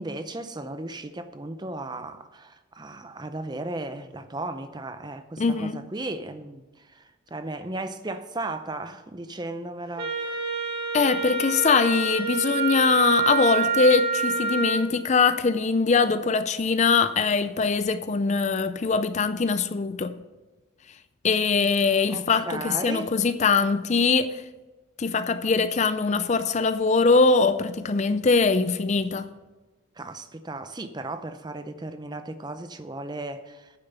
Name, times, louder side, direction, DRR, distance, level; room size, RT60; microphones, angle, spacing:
voice 1, 0.0-6.6 6.9-7.0 7.3-10.6 22.1-23.1 30.0-33.7, right 2 dB, 20° right, 0.6 m, -35 dB
voice 2, 5.4-5.8 10.9-20.2 21.2-24.4 25.0-29.3, left 4 dB, 35° left, 0.4 m, -22 dB
Wind instrument woodwind instrument, 10.0-14.9, right 5 dB, 50° right, 1.9 m, -27 dB
9.6 x 7.2 x 6.9 m
head